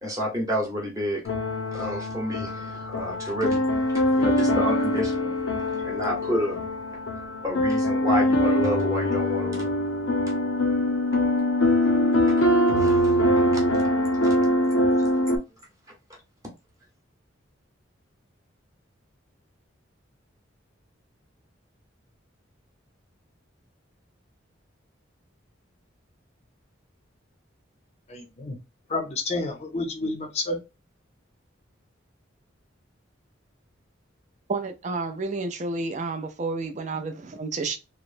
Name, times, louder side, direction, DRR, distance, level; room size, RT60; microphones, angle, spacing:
voice 1, 0.0-1.2 1.7-3.8 4.2-5.3 5.8-6.6 7.4-9.7 12.4-14.5 15.0-15.1, equal, 15° right, 0.9 m, -30 dB
sound 1, 1.2-15.4, left 1 dB, 85° left, 0.6 m, -23 dB
voice 2, 28.1-28.6 28.9-30.6, left 2 dB, 35° left, 0.6 m, -29 dB
voice 3, 34.5-37.7, right 3 dB, 35° right, 0.4 m, -30 dB
3.0 x 2.0 x 2.5 m
head